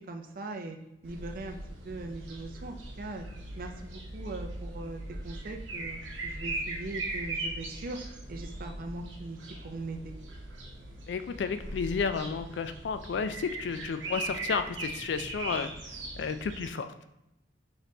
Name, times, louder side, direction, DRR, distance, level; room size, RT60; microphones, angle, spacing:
voice 1, 0.1-0.8 1.0-1.6 1.8-3.3 3.6-10.1, right 2 dB, 50° right, 4 dB, 0.5 m, -40 dB
sound 1, 1.0-16.7, right 2 dB, 90° right, 0.8 m, -39 dB
voice 2, 11.1-15.7 16.2-16.9, left 5 dB, 65° left, 10 dB, 0.3 m, -32 dB
5.0 x 3.2 x 2.8 m, 0.86 s
head